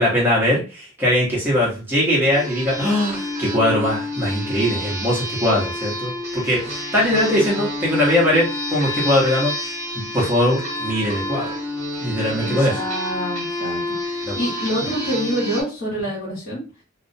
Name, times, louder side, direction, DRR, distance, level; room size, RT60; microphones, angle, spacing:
voice 1, 0.0-9.5 10.1-11.5 12.0-12.8 14.2-14.4, left 1 dB, 10° right, -6 dB, 0.9 m, -20 dB
sound 1, 2.3-15.6, left 1 dB, 35° right, 1.0 m, -29 dB
voice 2, 12.3-16.6, equal, 85° left, -7 dB, 1.1 m, -27 dB
2.4 x 2.1 x 2.6 m, 0.35 s
head